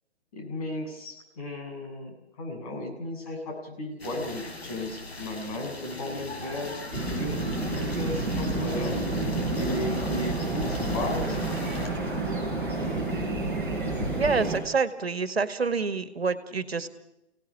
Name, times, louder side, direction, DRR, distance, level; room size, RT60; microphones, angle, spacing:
voice 1, 0.3-2.1 2.4-6.8 7.1-9.0 9.5-11.6, left 1 dB, 35° left, 2 dB, 7.6 m, -35 dB
sound 1, 4.0-11.9, left 2 dB, 70° left, 6.1 m, -40 dB
sound 2, 6.9-14.6, right 2 dB, 5° left, 6.5 m, -29 dB
voice 2, 14.1-16.9, right 4 dB, 70° right, 11 dB, 2.1 m, -27 dB
29.5 x 18.5 x 5.9 m, 0.87 s
figure-of-eight pair, 135°, 32 cm